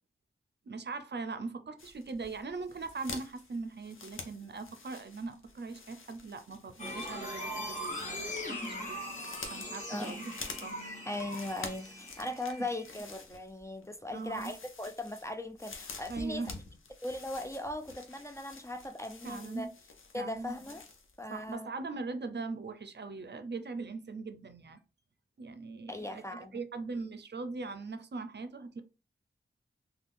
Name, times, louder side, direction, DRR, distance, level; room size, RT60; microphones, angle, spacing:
voice 1, 0.6-9.0 9.5-10.8 12.6-12.7 14.1-14.5 16.1-16.6 19.2-19.7 20.1-20.5 21.3-24.8 25.4-28.8, right 3 dB, 60° right, 0.5 m, -40 dB
sound 1, 1.8-21.2 21.5-21.6, left 4 dB, 85° left, 0.6 m, -49 dB
sound 2, 6.8-13.0, left 1 dB, 35° left, 1.2 m, -40 dB
voice 2, 11.1-16.4 17.0-19.7 20.1-20.8 21.2-21.7 25.9-26.6, left 1 dB, 15° left, 0.4 m, -39 dB
3.5 x 2.3 x 2.5 m
cardioid pair, 55°, 20 cm